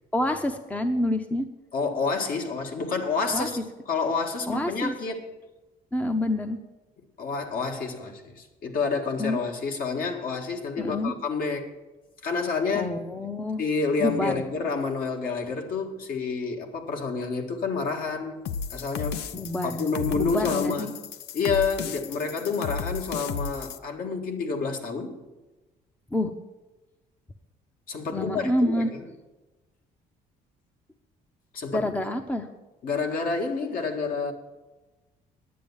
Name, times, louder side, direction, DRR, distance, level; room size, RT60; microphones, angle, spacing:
voice 1, 0.1-1.5 3.3-3.5 4.5-4.9 5.9-6.6 9.2-9.4 10.8-11.1 12.7-13.6 14.0-14.4 19.3-19.8 20.2-20.9 26.1-26.3 28.1-28.9 31.7-32.5, left 1 dB, 10° left, 7 dB, 0.7 m, -27 dB
voice 2, 1.7-3.6 3.9-5.2 7.2-11.7 12.2-12.9 13.6-18.4 18.7-19.4 19.7-20.9 21.3-25.2 27.9-29.1 31.5-31.9 32.8-34.3, left 4 dB, 60° left, 3 dB, 1.7 m, -29 dB
sound 1, 18.5-23.8, left 6 dB, 90° left, 0.6 m, -34 dB
10.5 x 8.3 x 7.2 m, 1.1 s
cardioid pair, 110°, 17 cm